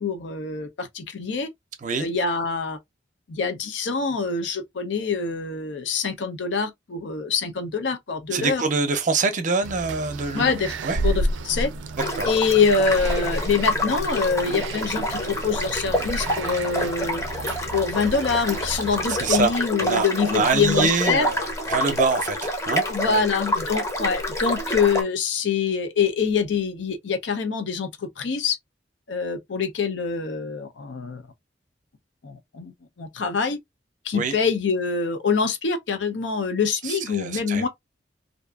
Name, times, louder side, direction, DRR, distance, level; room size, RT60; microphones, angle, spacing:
voice 1, 0.0-1.5 2.0-2.8 3.3-8.6 10.3-10.7 11.0-11.7 12.2-17.2 17.7-21.3 22.9-28.6 29.1-31.2 32.2-33.6 34.0-37.7, left 5 dB, 75° left, 0.6 m, -25 dB
voice 2, 8.3-10.6 10.8-11.0 12.2-12.3 19.1-23.3 34.1-34.3 36.8-37.7, right 4 dB, 45° right, 0.6 m, -25 dB
sound 1, 9.6-19.5, right 2 dB, 90° right, 0.4 m, -32 dB
sound 2, 12.0-25.0, left 1 dB, 15° left, 0.7 m, -27 dB
2.6 x 2.4 x 2.2 m
head